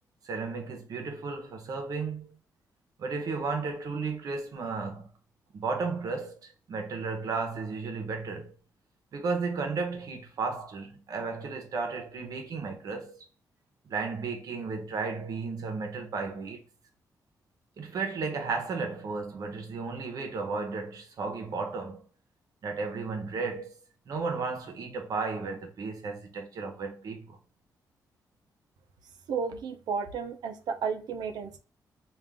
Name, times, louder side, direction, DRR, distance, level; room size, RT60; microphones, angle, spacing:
voice 1, 0.2-2.4 3.0-5.1 5.5-8.5 9.1-13.2 13.9-16.6 17.8-22.0 22.6-23.7 24.1-27.4, right 4 dB, 65° right, 0.9 m, -34 dB
voice 2, 29.3-31.6, right 6 dB, 90° right, 0.6 m, -33 dB
3.7 x 2.5 x 3.4 m
cardioid pair, 125°, 7 cm